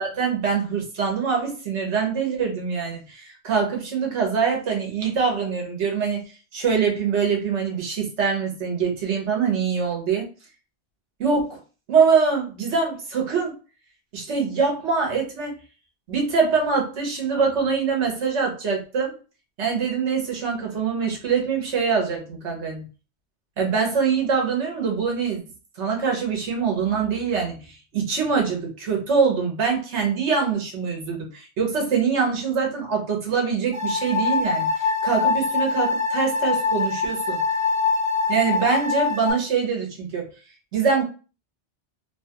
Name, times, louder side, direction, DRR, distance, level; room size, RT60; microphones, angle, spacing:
voice 1, 0.0-6.2 6.5-10.3 11.2-11.6 11.9-13.5 14.1-15.5 16.1-19.1 19.6-22.8 23.6-25.4 25.8-37.4 38.3-40.3 40.7-41.0, right 5 dB, 80° right, 1 dB, 1.2 m, -24 dB
sound 1, 33.7-39.3, left 4 dB, 55° right, 0.9 m, -24 dB
2.9 x 2.3 x 2.8 m, 0.34 s
omnidirectional pair, 1.2 m